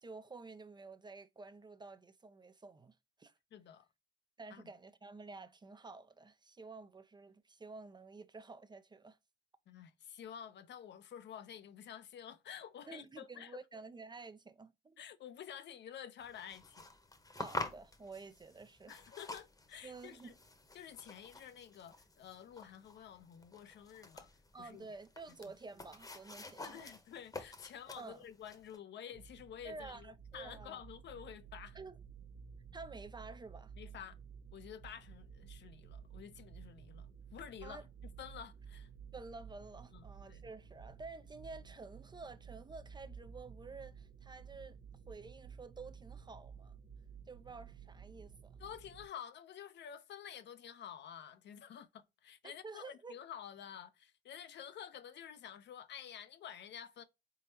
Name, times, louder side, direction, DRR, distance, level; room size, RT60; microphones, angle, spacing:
voice 1, 0.0-3.3 4.4-9.2 12.9-15.0 17.4-19.0 19.8-20.4 24.5-26.9 28.0-28.2 29.6-30.8 31.7-32.0 32.7-33.7 37.6-37.9 39.1-44.8 45.1-46.8 47.3-48.6 52.6-53.2, right 3 dB, 20° right, 0.4 m, -51 dB
voice 2, 3.5-3.9 4.5-4.7 9.7-13.6 15.0-16.9 18.9-20.3 20.7-24.3 24.6-24.9 26.6-31.8 33.8-34.2 34.5-37.8 38.2-38.9 39.9-40.4 48.6-57.0, left 9 dB, 65° left, 0.6 m, -50 dB
sound 1, 16.2-28.8, left 2 dB, 20° left, 0.9 m, -49 dB
sound 2, 29.1-49.1, right 7 dB, 70° right, 0.9 m, -54 dB
4.0 x 3.8 x 2.7 m
cardioid pair, 90°, 20 cm